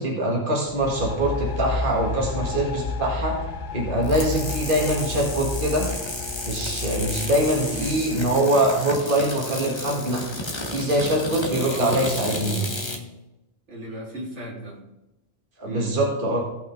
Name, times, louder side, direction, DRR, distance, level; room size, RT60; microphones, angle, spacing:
voice 1, 0.0-3.4 3.7-5.9 6.4-10.2 10.7-12.7 15.6-16.4, right 1 dB, 50° right, -2 dB, 2.1 m, -23 dB
sound 1, 0.7-8.4, left 4 dB, 50° left, 0.7 m, -32 dB
sound 2, 4.0-13.0, left 2 dB, 25° left, 1.2 m, -32 dB
voice 2, 7.6-8.0 11.6-12.1 13.7-14.8 15.6-15.9, equal, 80° right, -3 dB, 3.0 m, -34 dB
17.0 x 5.8 x 3.8 m, 0.94 s
omnidirectional pair, 1.2 m